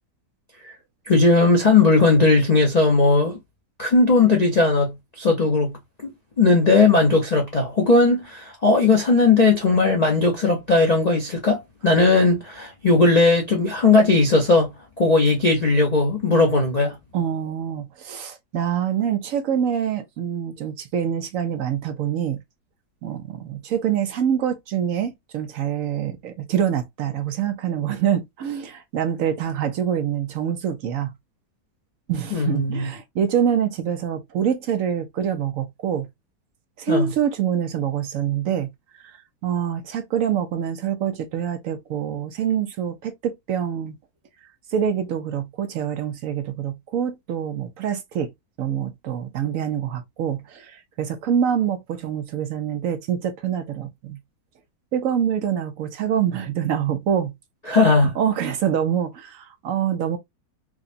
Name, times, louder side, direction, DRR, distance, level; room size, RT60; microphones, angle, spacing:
voice 1, 1.1-3.4 3.8-5.8 6.0-6.1 6.4-14.7 15.0-17.0 32.3-32.9 36.9-37.1 57.7-58.1, left 3 dB, 60° left, 0.4 m, -18 dB
voice 2, 17.1-22.4 23.0-31.1 32.1-36.1 36.8-38.7 39.0-43.9 44.7-48.3 48.6-54.2 54.9-57.3 57.7-60.2, right 9 dB, 70° right, 0.8 m, -25 dB
4.8 x 2.2 x 2.5 m
omnidirectional pair, 1.9 m